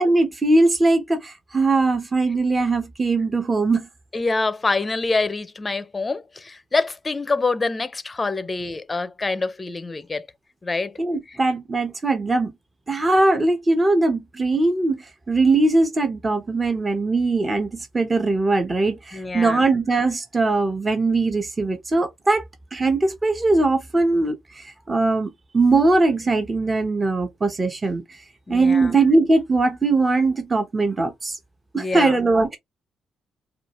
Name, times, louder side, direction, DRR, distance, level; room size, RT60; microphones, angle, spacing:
voice 1, 0.0-3.9 11.0-12.5 12.9-22.4 22.7-28.0 28.5-31.4 31.7-32.6, right 3 dB, 25° right, 0.9 m, -20 dB
voice 2, 4.1-10.3 10.6-11.0 19.1-19.6 28.5-28.9 31.7-32.2, left 3 dB, 25° left, 0.6 m, -26 dB
4.8 x 2.4 x 3.0 m
cardioid pair, 90°, 0 cm